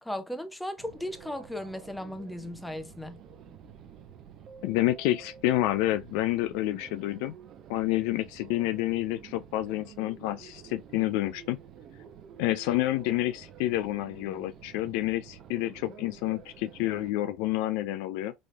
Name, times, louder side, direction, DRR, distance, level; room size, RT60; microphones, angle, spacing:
voice 1, 0.0-3.2, left 1 dB, 5° left, 0.7 m, -36 dB
sound 1, 0.8-17.1, right 8 dB, 50° right, 0.7 m, -50 dB
voice 2, 4.6-7.3 7.7-11.6 12.4-18.3, left 15 dB, 65° left, 0.3 m, -29 dB
4.0 x 3.1 x 2.3 m
hypercardioid pair, 75°, 0 cm